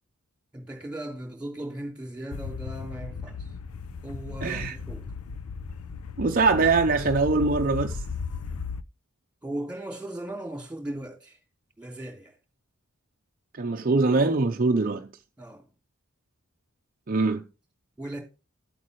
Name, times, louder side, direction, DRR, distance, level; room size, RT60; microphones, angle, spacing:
voice 1, 0.5-3.5 4.0-5.1 9.4-11.4 11.8-12.4 15.4-15.7 18.0-18.2, right 1 dB, 5° right, 3.2 m, -37 dB
sound 1, 2.3-8.8, left 5 dB, 90° left, 0.6 m, -36 dB
voice 2, 4.4-4.8 6.2-8.0 13.6-15.1 17.1-17.4, right 3 dB, 40° right, 0.6 m, -23 dB
12.5 x 8.4 x 3.1 m
head